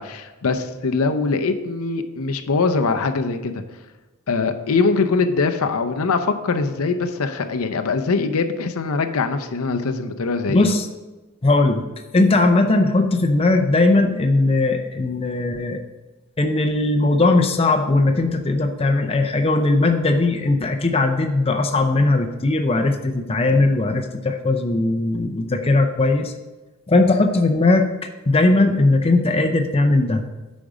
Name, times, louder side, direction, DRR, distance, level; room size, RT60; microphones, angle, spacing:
voice 1, 0.0-3.6 4.3-10.7, left 4 dB, 75° left, 7 dB, 0.6 m, -22 dB
voice 2, 10.5-10.9 11.4-11.8 12.1-15.8 16.4-26.3 26.9-27.9 28.3-30.2, left 2 dB, 25° left, 4 dB, 0.5 m, -18 dB
8.7 x 5.2 x 4.9 m, 1.2 s
head